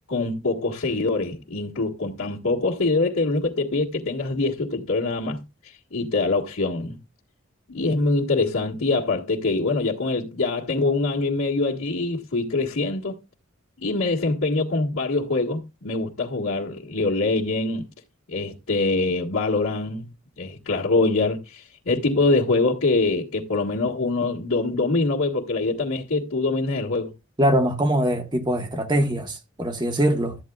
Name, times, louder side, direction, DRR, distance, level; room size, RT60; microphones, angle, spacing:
voice 1, 0.1-5.4 5.9-7.0 7.7-13.2 13.8-17.9 18.3-20.1 20.4-27.1, left 3 dB, 80° left, 1.7 m, -24 dB
voice 2, 27.4-30.4, right 1 dB, 20° right, 1.1 m, -22 dB
13.0 x 8.8 x 2.3 m
head